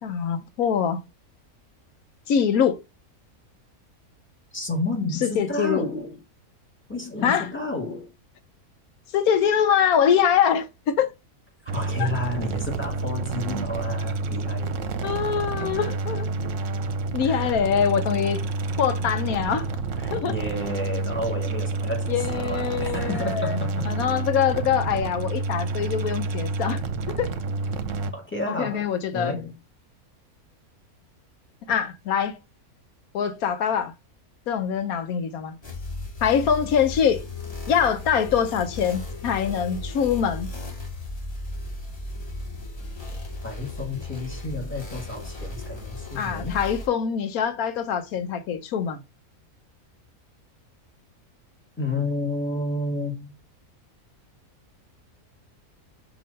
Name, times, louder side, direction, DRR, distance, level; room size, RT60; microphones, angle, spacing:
voice 1, 0.0-1.0 2.3-2.8 5.2-5.8 7.2-7.5 9.1-11.1 12.0-12.1 15.0-16.3 17.1-18.4 18.8-19.7 20.1-20.3 22.1-23.6 23.9-26.8 27.2-27.3 28.5-29.4 31.7-32.4 33.1-33.9 34.5-35.5 36.2-37.2 37.7-40.5 46.2-49.0, left 8 dB, 75° left, 1.2 m, -24 dB
voice 2, 4.5-6.2 6.9-8.1 11.6-14.8 16.4-16.5 17.2-17.6 20.0-23.8 28.1-29.5 43.4-46.6 51.8-53.4, left 2 dB, 10° left, 1.5 m, -31 dB
sound 1, 11.7-28.1, right 3 dB, 65° right, 1.0 m, -29 dB
sound 2, 35.6-46.9, left 2 dB, 25° left, 2.5 m, -35 dB
5.9 x 3.0 x 5.2 m
omnidirectional pair, 1.6 m